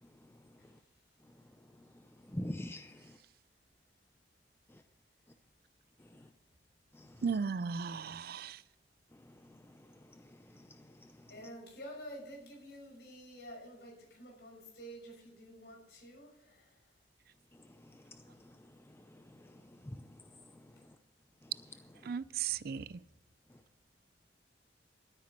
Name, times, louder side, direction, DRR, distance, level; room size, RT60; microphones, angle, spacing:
voice 1, 0.0-0.8 1.2-1.5 1.7-3.2 4.7-4.8 6.0-6.3 6.9-7.2 9.1-11.3 17.5-21.0 21.4-21.5 22.0-22.2 23.5-23.6, left 1 dB, 15° left, 0.5 m, -49 dB
voice 2, 7.2-8.6 22.0-23.0, right 6 dB, 55° right, 0.4 m, -36 dB
voice 3, 11.3-17.0 22.5-22.9, equal, 70° left, 5.9 m, -50 dB
12.5 x 9.4 x 6.7 m
head